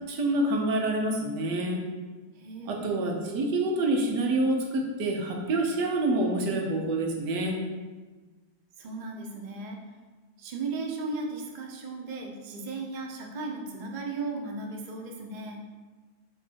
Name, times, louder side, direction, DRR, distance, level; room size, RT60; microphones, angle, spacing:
voice 1, 0.1-1.8 2.6-7.6, right 2 dB, 85° right, 1 dB, 1.6 m, -27 dB
voice 2, 2.3-3.0 8.8-9.8 10.4-15.6, right 3 dB, 40° right, 1 dB, 0.7 m, -36 dB
8.0 x 3.2 x 4.6 m, 1.3 s
omnidirectional pair, 1.8 m